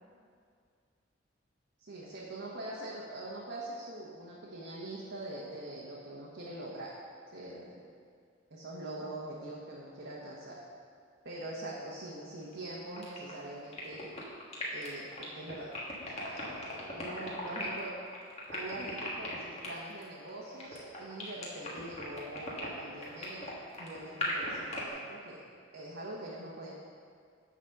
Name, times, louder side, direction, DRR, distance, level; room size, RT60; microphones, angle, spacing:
voice 1, 1.8-7.0 7.3-7.8 8.5-10.6 11.2-14.1 14.7-15.7 16.1-17.9 18.5-23.5 23.8-25.4 25.7-26.7, right 1 dB, 65° right, -6 dB, 1.2 m, -43 dB
sound 1, 12.4-24.8, left 1 dB, 35° left, 1.6 m, -39 dB
10.0 x 4.2 x 6.5 m, 2.2 s
head